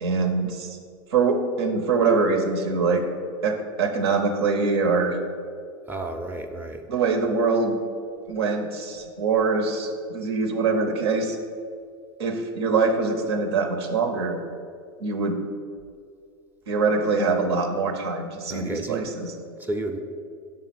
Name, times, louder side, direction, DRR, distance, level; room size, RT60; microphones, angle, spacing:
voice 1, 0.0-0.8 1.1-3.0 3.4-5.2 6.9-7.8 8.3-11.4 12.2-14.4 15.0-15.4 16.7-19.3, right 4 dB, 85° right, 5 dB, 0.8 m, -23 dB
voice 2, 5.9-6.9 18.5-19.1 19.6-20.0, right 2 dB, 15° right, 4 dB, 0.5 m, -31 dB
5.2 x 3.8 x 5.9 m, 2.2 s
hypercardioid pair, 105°, 13 cm